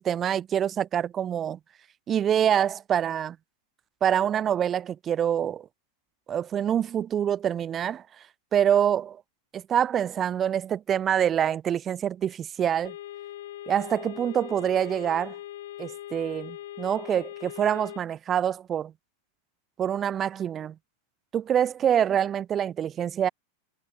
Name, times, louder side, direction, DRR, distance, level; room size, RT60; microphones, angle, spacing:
voice 1, 0.0-1.6 2.1-3.4 4.0-5.7 6.3-8.0 8.5-9.2 9.5-12.9 13.7-15.4 15.8-18.9 19.8-20.7 21.3-23.3, right 9 dB, 25° right, 0.4 m, -26 dB
sound 1, 12.8-18.0, left 13 dB, 55° left, 0.9 m, -40 dB
figure-of-eight pair, 90°, 0 cm